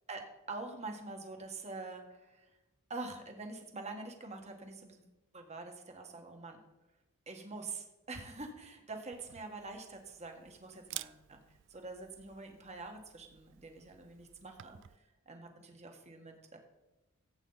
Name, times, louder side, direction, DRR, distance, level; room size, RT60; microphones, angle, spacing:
voice 1, 0.1-2.5 2.9-5.0 5.3-6.6 7.3-16.6, right 3 dB, 30° right, 4 dB, 1.6 m, -46 dB
Camera, 9.1-15.0, right 16 dB, 55° right, 0.3 m, -51 dB
15.5 x 8.3 x 4.1 m, 1.1 s
head